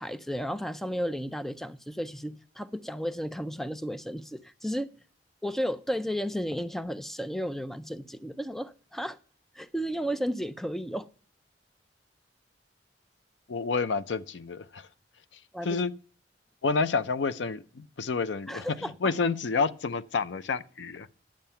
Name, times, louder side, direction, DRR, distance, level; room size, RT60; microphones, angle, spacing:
voice 1, 0.0-4.9 5.4-9.2 9.6-11.1 15.5-15.8 18.5-18.9, equal, ahead, 0.4 m, -33 dB
voice 2, 13.5-14.9 15.6-15.9 16.6-21.2, left 4 dB, 85° left, 0.6 m, -29 dB
10.5 x 7.4 x 5.7 m
head